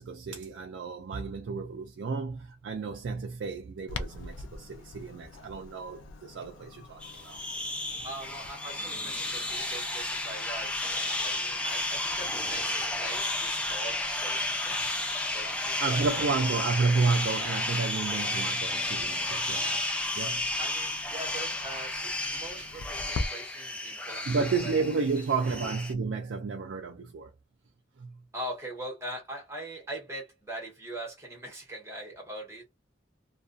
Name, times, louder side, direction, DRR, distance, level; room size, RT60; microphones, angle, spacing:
voice 1, 0.0-7.4 15.8-20.5 22.5-22.7 24.3-27.3 28.0-28.2, right 4 dB, 80° right, 0.4 m, -31 dB
Clock, 3.9-23.3, left 3 dB, 85° left, 0.4 m, -45 dB
sound 1, 7.0-25.9, left 2 dB, 5° left, 0.4 m, -32 dB
voice 2, 8.0-14.7 15.3-16.5 20.6-24.7 25.1-25.5 28.3-32.6, right 1 dB, 15° right, 1.1 m, -42 dB
2.3 x 2.2 x 2.5 m
head